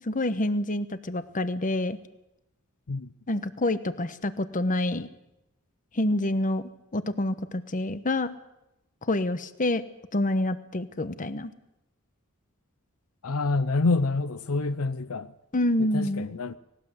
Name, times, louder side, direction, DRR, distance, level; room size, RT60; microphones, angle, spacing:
voice 1, 0.0-2.0 3.3-5.1 5.9-6.6 6.9-8.3 9.1-9.8 10.1-11.5 15.5-16.3, left 1 dB, 40° left, 1.1 m, -27 dB
voice 2, 13.2-15.3 15.9-16.6, left 3 dB, 75° left, 0.7 m, -27 dB
19.0 x 18.5 x 8.0 m
head